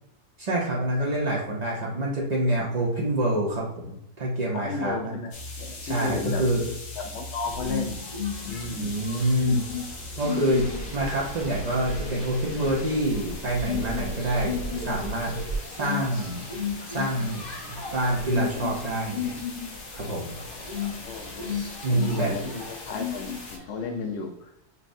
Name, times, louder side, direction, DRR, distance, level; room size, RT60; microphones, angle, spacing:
voice 1, 0.4-5.2 5.8-6.6 8.8-9.6 10.2-10.7 10.9-15.4 15.8-16.5 16.8-17.4 17.7-19.4 19.9-20.4 21.8-22.3, right 1 dB, 75° right, -4 dB, 0.3 m, -26 dB
voice 2, 4.5-6.4 7.0-8.0 8.5-9.0 20.5-21.4 21.9-24.5, left 3 dB, 85° left, 4 dB, 0.6 m, -34 dB
sound 1, 5.3-23.6, left 2 dB, 55° left, 1.0 m, -41 dB
sound 2, 7.4-24.1, left 7 dB, 25° left, 0.9 m, -35 dB
sound 3, 10.5-15.6, right 3 dB, 90° right, 1.5 m, -37 dB
5.7 x 2.0 x 2.6 m, 0.80 s
omnidirectional pair, 1.7 m